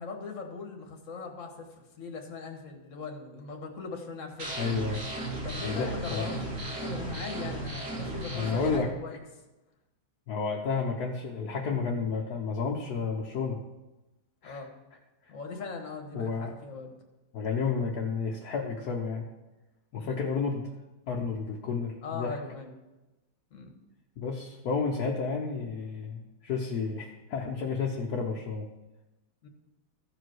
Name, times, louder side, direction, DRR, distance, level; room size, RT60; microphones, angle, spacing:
voice 1, 0.0-1.7 2.0-4.6 5.4-9.2 14.4-14.7 15.3-16.9 20.0-20.2 22.0-22.7 23.5-23.7 29.4-29.5, left 4 dB, 45° left, 3 dB, 1.6 m, -40 dB
sound 1, 4.4-8.8, right 2 dB, 65° right, 2.2 m, -35 dB
voice 2, 4.6-5.0 5.6-6.3 8.3-8.9 10.3-13.6 14.4-14.6 16.1-16.6 17.3-19.3 19.9-20.7 21.1-22.4 24.2-28.7, left 5 dB, 60° left, 0 dB, 1.4 m, -31 dB
14.5 x 5.0 x 6.2 m, 1.1 s
omnidirectional pair, 2.1 m